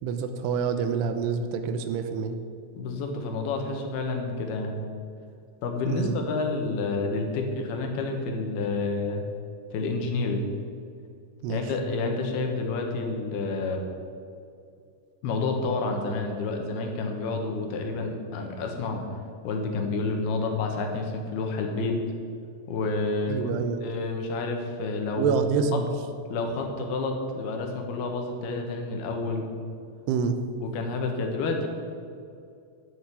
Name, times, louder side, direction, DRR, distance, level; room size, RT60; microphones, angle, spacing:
voice 1, 0.0-2.4 5.9-6.1 11.4-11.6 23.3-23.8 25.2-25.9 30.1-30.4, right 6 dB, 80° right, 8 dB, 2.9 m, -27 dB
voice 2, 2.8-4.8 5.6-9.2 9.7-10.5 11.5-13.8 15.2-19.1 19.4-22.0 22.7-23.5 23.8-25.4 26.3-29.5 30.6-31.7, left 3 dB, 75° left, 3 dB, 3.2 m, -29 dB
10.5 x 7.9 x 8.5 m, 2.5 s
omnidirectional pair, 4.8 m